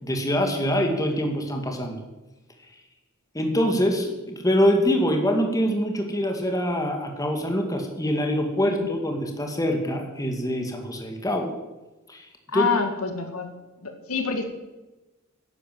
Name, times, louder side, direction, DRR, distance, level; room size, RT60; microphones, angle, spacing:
voice 1, 0.0-2.0 3.3-11.5 12.1-12.3 12.5-12.7, equal, 15° left, 3 dB, 2.0 m, -24 dB
voice 2, 12.5-13.5 13.8-14.5, left 5 dB, 75° left, 5 dB, 1.9 m, -27 dB
11.5 x 10.0 x 7.7 m, 1.1 s
head